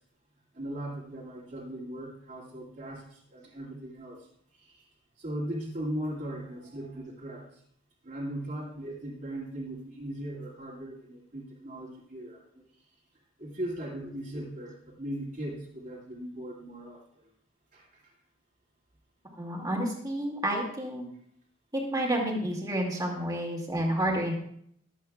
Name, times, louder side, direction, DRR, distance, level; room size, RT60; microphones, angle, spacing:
voice 1, 0.5-4.9 5.2-7.6 8.0-12.4 13.4-17.3 17.7-18.1 23.2-23.3, right 1 dB, 40° right, -8 dB, 2.2 m, -38 dB
voice 2, 19.3-21.0 21.7-24.3, right 1 dB, 20° right, -1 dB, 2.1 m, -30 dB
22.0 x 8.2 x 2.3 m, 0.67 s
head